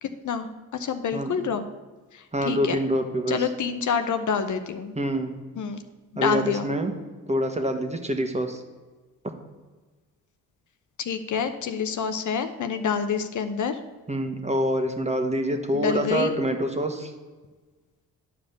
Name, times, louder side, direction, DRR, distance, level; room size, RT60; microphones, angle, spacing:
voice 1, 0.0-1.6 2.1-2.8 3.3-5.0 5.5-5.8 6.1-6.7 11.0-13.8 15.7-16.3, left 6 dB, 55° left, 8 dB, 0.8 m, -27 dB
voice 2, 2.3-3.4 5.0-5.4 6.1-6.9 7.3-8.6 14.1-17.1, equal, 20° right, 5 dB, 1.5 m, -26 dB
10.5 x 5.0 x 7.0 m, 1.3 s
hypercardioid pair, 50°, 36 cm